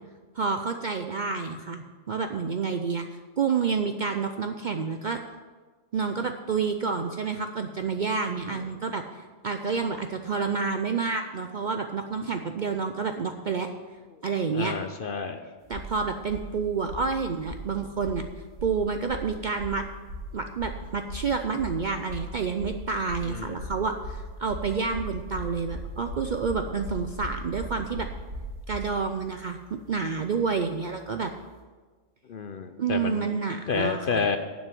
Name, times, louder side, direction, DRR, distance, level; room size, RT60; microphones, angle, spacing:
voice 1, 0.3-5.2 5.9-13.7 14.2-14.8 15.7-18.2 18.6-19.8 20.3-28.1 28.7-31.3 32.8-34.2, right 5 dB, 55° right, 6 dB, 0.5 m, -29 dB
voice 2, 14.5-15.4 23.3-23.7 32.3-33.3 33.7-34.4, left 5 dB, 55° left, 8 dB, 0.7 m, -30 dB
sound 1, 15.7-16.0 16.3-16.5 16.9-17.1 17.4-17.7 18.0-18.2 18.6-18.8 19.1-19.3 19.6-19.8 20.1-20.3 20.6-20.8 21.1-21.3 21.6-21.8 22.1-22.3 22.6-22.8 23.1-23.3 23.6-28.9, equal, 80° right, 2.4 m, -37 dB
10.5 x 6.2 x 7.5 m, 1.4 s
omnidirectional pair, 1.3 m